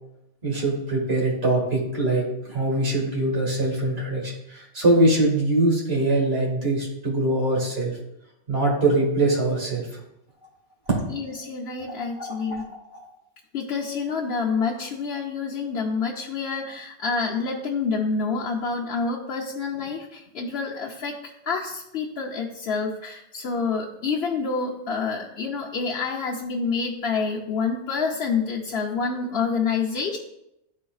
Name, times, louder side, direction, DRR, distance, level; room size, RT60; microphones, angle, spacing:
voice 1, 0.4-7.9 8.5-9.9 10.9-11.0 12.2-12.6, right 2 dB, 55° right, -3 dB, 2.2 m, -23 dB
voice 2, 11.1-12.7 13.5-30.2, left 5 dB, 60° left, -4 dB, 1.0 m, -28 dB
12.5 x 4.1 x 2.3 m, 0.86 s
omnidirectional pair, 1.2 m